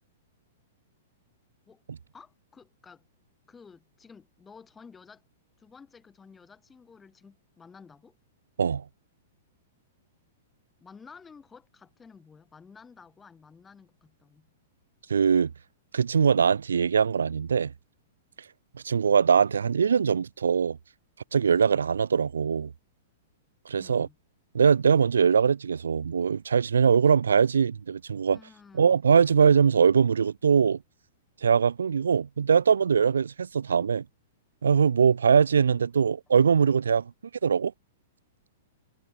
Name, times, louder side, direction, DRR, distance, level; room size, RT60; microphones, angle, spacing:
voice 1, 2.1-3.0 3.5-5.2 5.6-8.2 10.8-14.5 23.8-24.2 28.3-29.0, left 5 dB, 15° left, 5.6 m, -52 dB
voice 2, 15.1-15.5 15.9-17.7 18.7-20.8 21.3-22.7 23.7-24.1 24.5-28.4 28.7-30.8 31.4-34.0 34.6-37.1 37.4-37.7, right 6 dB, 70° right, 0.6 m, -22 dB
figure-of-eight pair, 105°, 0 cm